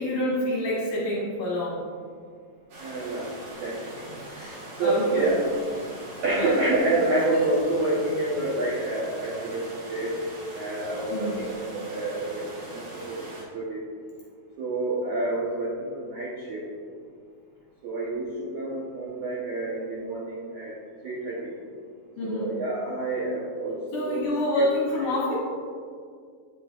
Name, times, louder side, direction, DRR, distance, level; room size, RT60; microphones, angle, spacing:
voice 1, 0.0-1.8 4.8-5.3 6.4-6.6 7.3-7.4 11.1-11.5 22.2-22.5 23.9-25.3, left 1 dB, 70° left, -6 dB, 2.0 m, -27 dB
sound 1, 2.7-13.4, right 1 dB, 55° right, 2.4 m, -42 dB
voice 2, 2.8-3.3 3.6-5.5 6.2-10.2 10.5-13.2 13.5-13.8 14.6-16.7 17.8-20.7 21.0-21.5 22.2-24.3 24.5-24.7 25.0-25.1, right 2 dB, 75° right, -7 dB, 1.7 m, -28 dB
9.0 x 6.7 x 2.4 m, 2.1 s
omnidirectional pair, 5.0 m